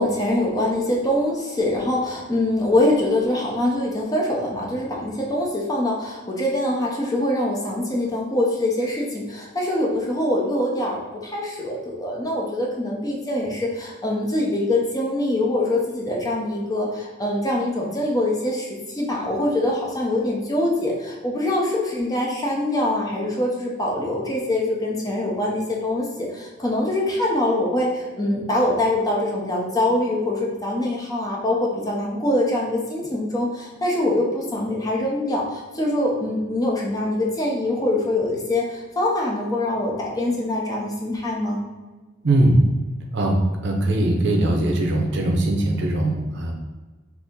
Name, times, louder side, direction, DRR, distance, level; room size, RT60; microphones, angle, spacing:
voice 1, 0.0-38.7 39.0-41.6, left 1 dB, 20° left, -2 dB, 0.5 m, -24 dB
voice 2, 42.2-42.7 43.1-43.4 43.6-46.5, right 1 dB, 65° right, 1 dB, 0.6 m, -20 dB
2.7 x 2.5 x 3.6 m, 1.3 s
head